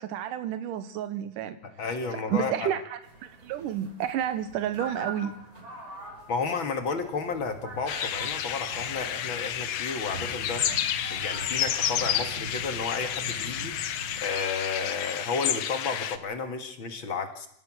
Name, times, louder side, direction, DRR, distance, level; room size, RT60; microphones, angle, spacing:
voice 1, 0.0-1.6 2.3-5.4, right 10 dB, 85° right, 10 dB, 2.6 m, -30 dB
voice 2, 1.6-2.7 6.3-10.7 11.1-13.8 14.2-17.5, left 4 dB, 45° left, 7 dB, 2.2 m, -32 dB
sound 1, 3.0-14.2, right 2 dB, 50° right, 7.5 m, -43 dB
sound 2, 7.9-16.2, left 10 dB, 65° left, 1.8 m, -30 dB
28.0 x 16.0 x 6.2 m, 0.73 s
omnidirectional pair, 3.7 m